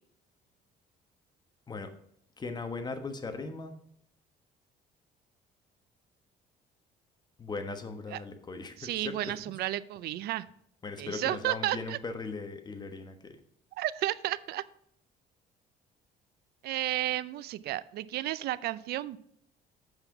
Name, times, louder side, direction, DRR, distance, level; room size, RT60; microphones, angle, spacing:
voice 1, 2.4-3.7 7.4-9.3 10.8-13.3, left 3 dB, 25° left, 7 dB, 1.2 m, -38 dB
voice 2, 8.8-10.5 11.0-12.0 13.8-14.6 16.6-19.2, right 14 dB, 70° right, 17 dB, 0.5 m, -32 dB
8.0 x 5.7 x 5.8 m, 0.70 s
cardioid pair, 110°, 17 cm